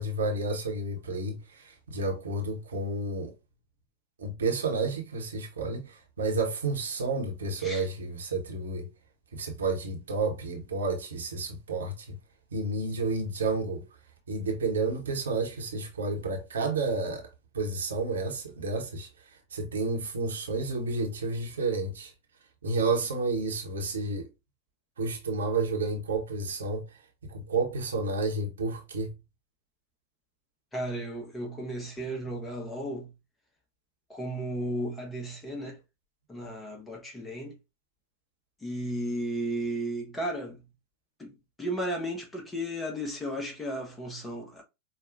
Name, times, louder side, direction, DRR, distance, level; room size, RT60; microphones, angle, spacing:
voice 1, 0.0-3.3 4.2-8.9 9.3-12.2 12.5-13.9 14.3-17.3 17.5-19.1 19.5-22.1 22.6-24.3 25.0-29.1, right 3 dB, 65° right, 1.0 m, -31 dB
voice 2, 30.7-33.1 34.1-35.8 36.3-37.6 38.6-40.6 41.2-44.6, right 1 dB, 15° left, 1.0 m, -34 dB
5.1 x 2.3 x 2.5 m
figure-of-eight pair, 90°, 0 cm